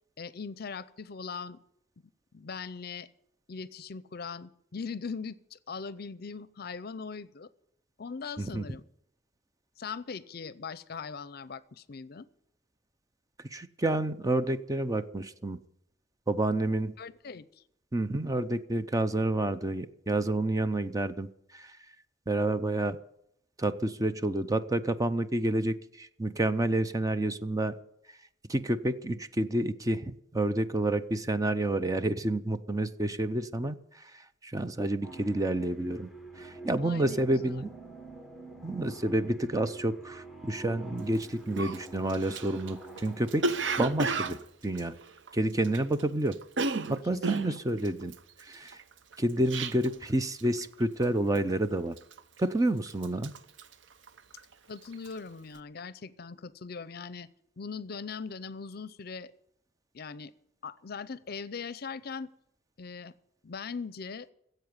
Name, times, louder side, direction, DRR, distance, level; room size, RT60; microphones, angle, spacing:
voice 1, 0.2-1.6 2.3-3.1 3.5-7.5 8.0-8.8 9.8-12.3 17.0-17.4 36.8-37.5 47.1-47.6 54.7-57.3 57.6-59.3 59.9-60.3 60.6-62.3 62.8-63.1 63.4-64.3, left 5 dB, 55° left, 18 dB, 0.6 m, -40 dB
voice 2, 13.5-15.6 16.3-16.9 17.9-21.3 21.5-21.7 22.3-23.0 23.6-27.7 28.5-33.8 34.4-36.1 36.4-37.7 38.6-45.0 45.3-46.4 46.7-48.1 48.4-48.8 49.2-52.0 52.4-53.3, right 1 dB, 20° right, 11 dB, 0.6 m, -29 dB
sound 1, 35.0-44.3, right 2 dB, ahead, 1.5 m, -46 dB
Cough, 41.1-41.2 41.6-46.0 46.3-50.1 50.4-50.7 51.0-51.5 52.0-52.6 52.9-54.5 54.8-55.2, right 3 dB, 85° right, 0.8 m, -33 dB
15.5 x 7.9 x 9.6 m, 0.77 s
head